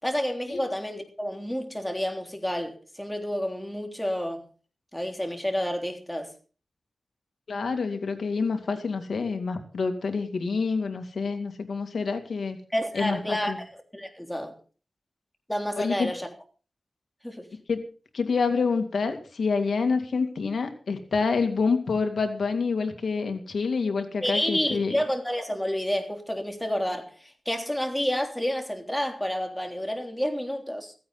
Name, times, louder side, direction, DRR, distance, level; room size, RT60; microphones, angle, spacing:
voice 1, 0.0-4.4 4.9-6.3 12.7-13.5 13.9-14.5 15.5-16.3 17.2-17.5 24.2-30.9, equal, 10° left, 3.4 m, -29 dB
voice 2, 7.5-12.6 12.9-13.6 15.8-16.1 17.7-17.8 18.1-25.0, left 4 dB, 90° left, 2.4 m, -27 dB
16.0 x 15.5 x 4.0 m
wide cardioid pair, 60°, 0 cm